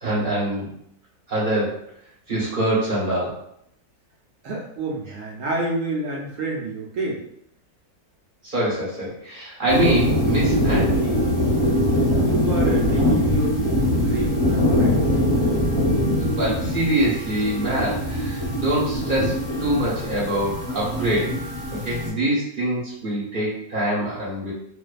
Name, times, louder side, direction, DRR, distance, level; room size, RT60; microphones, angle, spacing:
voice 1, 0.0-0.7 1.3-1.8 2.3-3.4 8.4-11.1 16.3-21.4 21.8-24.5, right 1 dB, 40° right, -7 dB, 0.9 m, -24 dB
voice 2, 4.4-7.2 12.2-15.0, right 2 dB, 70° right, -2 dB, 0.8 m, -29 dB
sound 1, 9.7-22.1, equal, 20° left, 1.0 m, -22 dB
2.5 x 2.2 x 2.3 m, 0.72 s
omnidirectional pair, 1.6 m